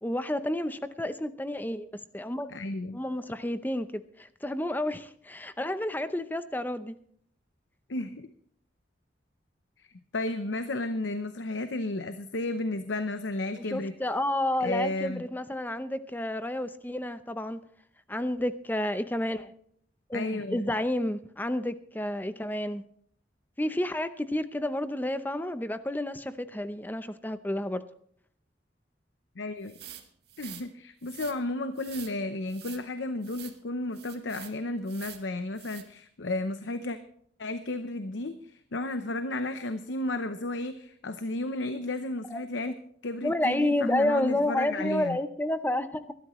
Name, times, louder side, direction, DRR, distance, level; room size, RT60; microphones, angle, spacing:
voice 1, 0.0-2.5 2.9-7.0 13.7-17.6 18.1-19.5 20.1-22.8 23.6-27.8 42.3-42.4 43.2-46.1, left 1 dB, 10° left, 12 dB, 0.6 m, -30 dB
voice 2, 2.5-3.0 7.9-8.3 9.8-9.9 10.1-13.9 14.6-15.2 20.1-20.7 29.4-29.8 30.4-37.0 37.4-42.8 43.0-45.2, left 2 dB, 85° left, 10 dB, 0.8 m, -33 dB
sound 1, 29.7-30.7 31.0-31.4 31.8-32.1 32.5-32.8 33.2-33.6 33.9-34.5 34.9-35.2 35.6-35.8, right 11 dB, 60° right, 1.6 m, -46 dB
21.5 x 12.5 x 3.1 m, 0.62 s
head